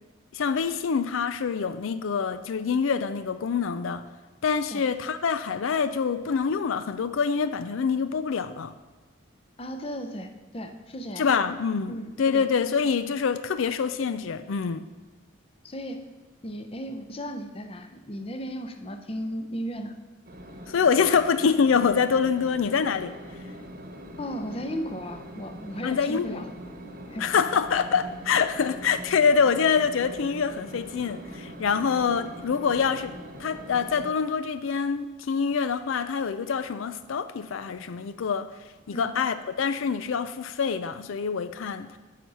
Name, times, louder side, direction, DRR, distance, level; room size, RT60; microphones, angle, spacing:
voice 1, 0.3-4.0 4.4-8.7 11.2-14.9 20.7-23.1 25.8-26.4 27.2-33.1 33.4-38.5 38.9-42.0, left 6 dB, 85° left, 12 dB, 0.4 m, -25 dB
voice 2, 9.6-11.3 11.9-12.5 15.6-16.0 16.4-20.0 24.2-26.5 27.1-27.2 38.9-39.1, equal, 30° left, 7 dB, 0.7 m, -35 dB
sound 1, 20.2-34.1, equal, 45° right, 1.1 m, -42 dB
9.2 x 6.2 x 5.5 m, 1.2 s
head